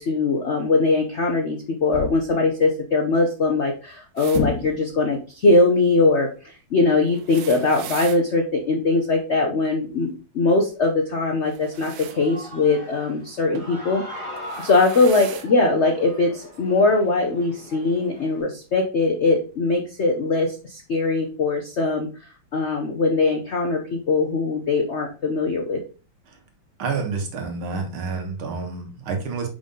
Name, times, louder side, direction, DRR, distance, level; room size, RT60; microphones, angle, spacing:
voice 1, 0.0-14.0 14.6-22.1 22.5-25.8, left 3 dB, 70° left, 3 dB, 0.6 m, -21 dB
sound 1, 1.9-2.5 4.3-5.2, left 5 dB, 50° left, 1.6 m, -29 dB
sound 2, 4.2-4.4 7.1-8.2 11.4-12.2 13.5-13.8 14.4-15.5 16.5-16.6 17.8-17.9, right 10 dB, 70° right, 0.9 m, -39 dB
Human voice / Cheering, 11.8-18.4, equal, 15° left, 2.3 m, -40 dB
voice 2, 26.8-29.5, right 4 dB, 85° right, 4 dB, 2.2 m, -29 dB
5.4 x 5.0 x 3.7 m, 0.35 s
omnidirectional pair, 2.2 m